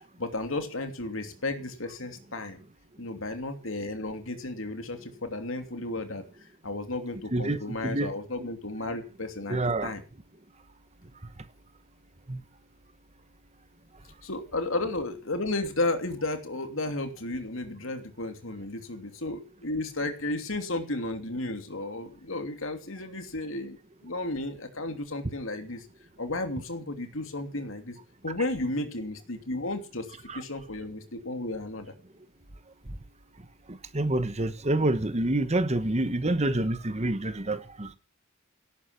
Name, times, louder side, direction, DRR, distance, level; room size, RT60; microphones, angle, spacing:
voice 1, 0.2-2.6 3.0-6.2 6.6-10.0 14.2-23.8 24.0-25.9 26.2-28.0 28.2-30.1 30.3-31.9, left 2 dB, 70° left, 3.0 m, -33 dB
voice 2, 7.3-8.1 9.5-9.9 11.2-11.5 12.3-12.4 30.3-30.4 32.9-33.0 33.7-38.0, right 2 dB, 30° right, 1.2 m, -28 dB
17.5 x 9.6 x 5.9 m
head